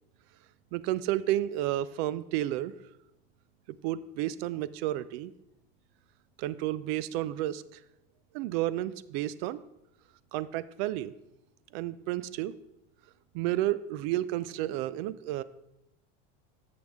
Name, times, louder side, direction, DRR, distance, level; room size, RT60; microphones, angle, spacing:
voice 1, 0.7-2.7 3.8-5.3 6.4-7.8 8.3-9.6 10.3-11.1 11.7-12.5 13.3-15.4, right 14 dB, 75° right, 17 dB, 0.5 m, -31 dB
9.5 x 6.9 x 3.5 m, 0.86 s
supercardioid pair, 105°, 31 cm